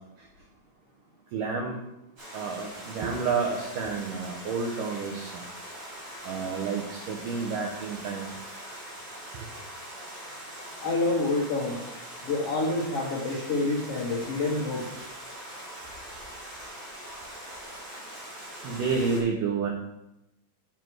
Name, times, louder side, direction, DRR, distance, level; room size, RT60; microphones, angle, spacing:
voice 1, 1.3-1.8 2.3-5.5 6.2-8.3 18.6-19.7, right 5 dB, 85° right, -1 dB, 1.9 m, -30 dB
Stream, 2.2-19.2, right 1 dB, 35° right, 4.1 m, -42 dB
voice 2, 10.8-11.9 12.2-15.0, left 2 dB, 75° left, -5 dB, 1.3 m, -28 dB
7.5 x 7.4 x 4.6 m, 0.89 s
omnidirectional pair, 5.0 m